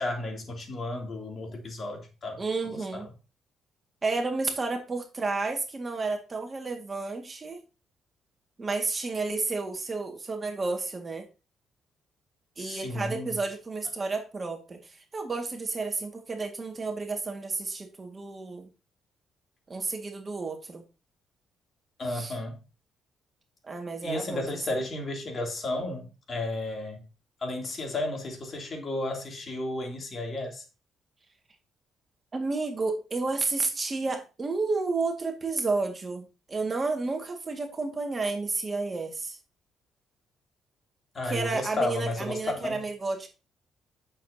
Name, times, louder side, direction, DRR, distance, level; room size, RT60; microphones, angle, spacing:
voice 1, 0.0-3.1 12.6-13.4 22.0-22.6 24.0-27.0 27.4-30.6 41.1-42.8, left 2 dB, 40° left, 3.1 m, -33 dB
voice 2, 2.4-3.1 4.0-7.6 8.6-11.3 12.6-18.7 19.7-20.8 22.1-22.3 23.6-24.6 32.3-39.4 41.3-43.3, right 3 dB, 30° right, 2.0 m, -31 dB
9.1 x 7.0 x 2.9 m
cardioid pair, 90°, 0 cm